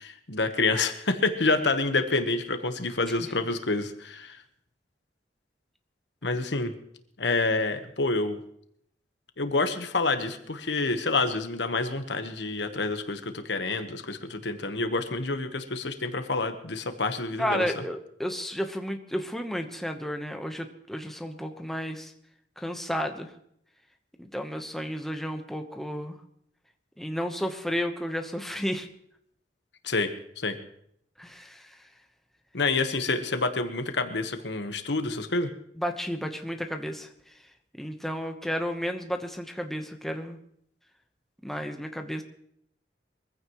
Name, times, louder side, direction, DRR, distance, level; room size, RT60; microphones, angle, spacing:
voice 1, 0.0-4.4 6.2-6.7 7.2-8.4 9.4-17.7 29.8-30.1 30.4-30.6 32.5-35.5, left 3 dB, 70° left, 8 dB, 1.2 m, -28 dB
voice 2, 17.4-22.1 22.6-23.3 24.2-26.2 27.0-28.9 31.2-31.8 35.8-37.1 37.8-40.4 41.4-42.2, equal, ahead, 4 dB, 1.1 m, -32 dB
23.0 x 15.0 x 3.1 m, 0.70 s
head